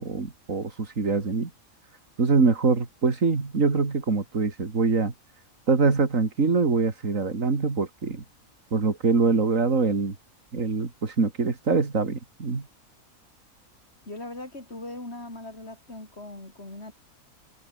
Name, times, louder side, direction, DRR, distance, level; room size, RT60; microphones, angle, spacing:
voice 1, 0.0-1.5 2.2-5.1 5.7-8.2 8.7-10.1 10.5-12.6, right 4 dB, 60° right, 3.0 m, -24 dB
voice 2, 14.0-16.9, left 2 dB, 45° left, 6.9 m, -39 dB
omnidirectional pair, 1.5 m